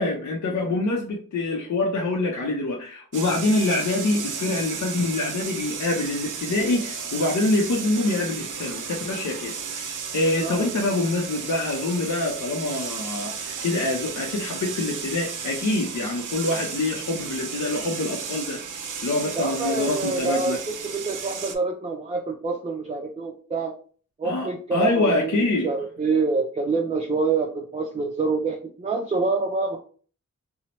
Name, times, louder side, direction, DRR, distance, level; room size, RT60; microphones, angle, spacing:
voice 1, 0.0-18.6 19.0-20.6 24.2-25.7, left 2 dB, 65° left, -1 dB, 0.6 m, -25 dB
sound 1, 3.1-21.6, right 6 dB, 80° right, 0.5 m, -34 dB
voice 2, 10.4-10.7 19.3-23.7 24.2-29.8, right 4 dB, 25° right, 2 dB, 0.4 m, -26 dB
2.9 x 2.0 x 2.8 m, 0.43 s
wide cardioid pair, 65°, 31 cm